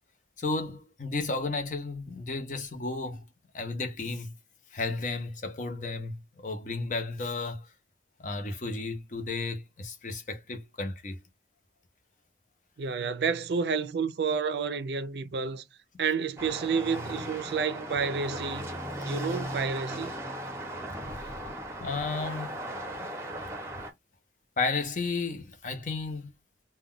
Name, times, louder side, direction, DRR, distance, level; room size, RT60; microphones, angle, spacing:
voice 1, 0.4-3.2 3.5-4.3 4.7-7.7 8.2-11.2 20.9-21.3 21.8-22.6 23.3-23.4 24.6-26.3, left 3 dB, 45° left, 0.6 m, -33 dB
voice 2, 12.8-15.6 16.0-18.7 19.0-20.1, right 5 dB, 70° right, 0.4 m, -30 dB
sound 1, 16.4-23.9, right 1 dB, 15° right, 0.7 m, -37 dB
2.2 x 2.2 x 3.6 m
head